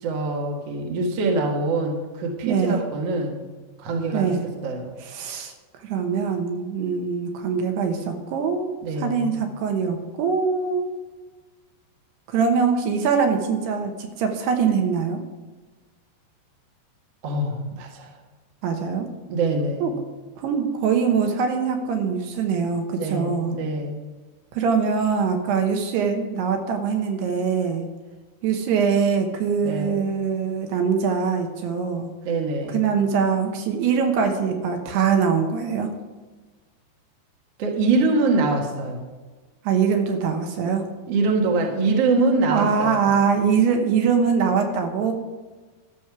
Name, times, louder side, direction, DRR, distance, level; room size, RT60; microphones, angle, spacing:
voice 1, 0.0-3.4 3.8-4.9 8.8-9.4 17.2-18.1 19.3-19.9 23.0-24.0 29.6-30.1 32.2-32.8 37.6-39.0 41.1-43.1, right 3 dB, 60° right, 1 dB, 1.7 m, -24 dB
voice 2, 2.4-2.8 4.1-4.5 5.0-5.5 5.8-8.7 9.0-10.9 12.3-15.2 18.6-19.1 19.8-19.9 20.4-23.6 24.5-27.9 28.4-32.1 32.7-35.9 39.6-40.8 42.5-45.1, right 6 dB, 80° right, 4 dB, 3.1 m, -23 dB
13.0 x 6.3 x 5.9 m, 1.3 s
omnidirectional pair, 4.9 m